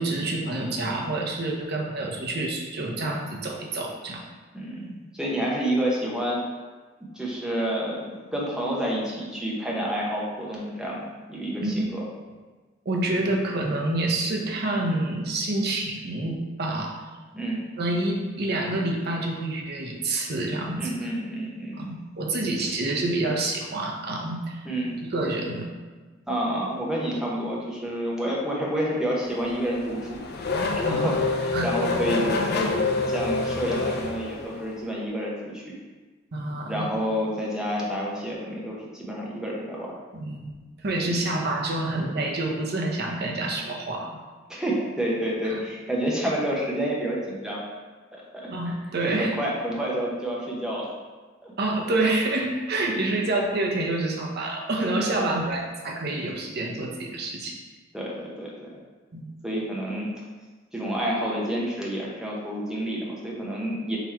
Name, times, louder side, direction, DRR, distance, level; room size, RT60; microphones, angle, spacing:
voice 1, 0.0-4.2 11.6-11.7 12.9-16.9 17.8-20.9 21.7-24.6 25.0-25.7 30.8-31.2 31.5-31.7 36.3-36.9 40.1-40.5 40.8-44.2 45.5-45.6 48.5-49.3 51.6-57.6 59.1-59.3, right 2 dB, 55° right, 0 dB, 0.7 m, -27 dB
voice 2, 4.5-6.4 7.1-12.0 17.3-17.6 20.8-21.9 24.6-25.0 26.3-35.7 36.7-40.0 41.0-41.2 44.5-47.6 48.1-48.7 49.0-50.9 51.4-51.5 55.0-55.5 57.9-58.8 59.4-60.1 60.7-64.0, right 1 dB, 5° right, -4 dB, 0.9 m, -29 dB
Race car auto racing / Accelerating revving vroom, 29.3-34.8, left 3 dB, 55° left, 0.4 m, -27 dB
3.9 x 3.0 x 4.4 m, 1.3 s
head